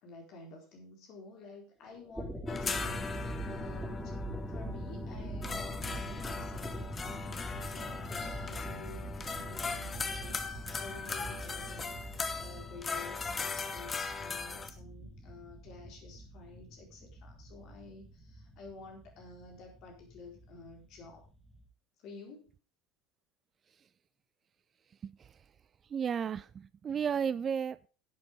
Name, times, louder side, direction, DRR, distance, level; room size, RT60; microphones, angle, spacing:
voice 1, 0.0-4.2 4.5-21.3 22.0-22.5, left 3 dB, 50° left, 2 dB, 4.2 m, -51 dB
sound 1, 2.0-21.7, equal, 5° right, 4.3 m, -43 dB
sound 2, 2.5-14.7, left 4 dB, 25° left, 1.3 m, -39 dB
voice 2, 25.9-27.9, right 7 dB, 30° right, 18 dB, 0.5 m, -33 dB
11.0 x 8.2 x 5.1 m, 0.35 s
figure-of-eight pair, 70°, 0 cm